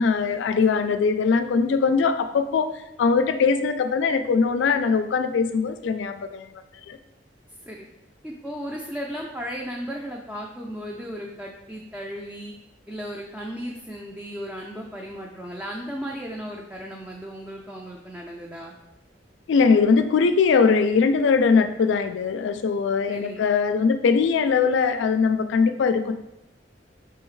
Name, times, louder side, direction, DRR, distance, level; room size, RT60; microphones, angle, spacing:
voice 1, 0.0-2.7 3.0-6.5 6.9-7.0 19.5-26.1, left 5 dB, 85° left, 9 dB, 0.3 m, -21 dB
voice 2, 8.2-12.5 12.9-18.7 23.1-23.5, equal, 5° right, -2 dB, 0.3 m, -35 dB
5.5 x 2.8 x 3.1 m, 0.89 s
head